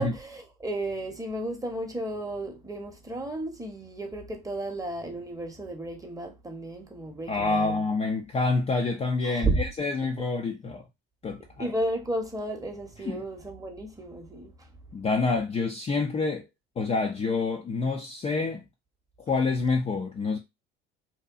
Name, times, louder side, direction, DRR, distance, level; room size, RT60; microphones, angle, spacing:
voice 1, 0.0-7.8 9.2-9.6 11.6-14.5, right 2 dB, 10° right, 0.8 m, -33 dB
voice 2, 7.3-10.8 11.2-11.7 13.0-13.2 14.9-16.4 16.8-18.6 19.3-20.4, left 3 dB, 20° left, 0.4 m, -27 dB
2.8 x 2.2 x 2.4 m
hypercardioid pair, 70°, 30 cm